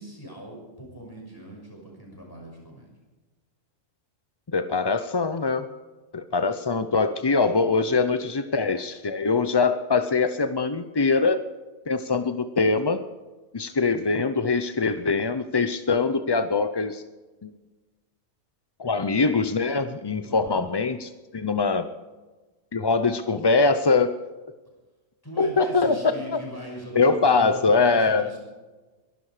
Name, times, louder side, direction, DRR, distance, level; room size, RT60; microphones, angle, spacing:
voice 1, 0.0-2.9 20.2-20.6 25.2-28.4, equal, 15° left, -1 dB, 6.0 m, -40 dB
voice 2, 4.5-5.7 6.1-11.4 11.9-13.0 13.5-17.0 17.4-17.5 18.8-21.9 22.7-24.2 25.4-26.4 26.9-28.3, left 4 dB, 35° left, 10 dB, 0.4 m, -23 dB
22.5 x 12.0 x 5.0 m, 1.2 s
omnidirectional pair, 1.4 m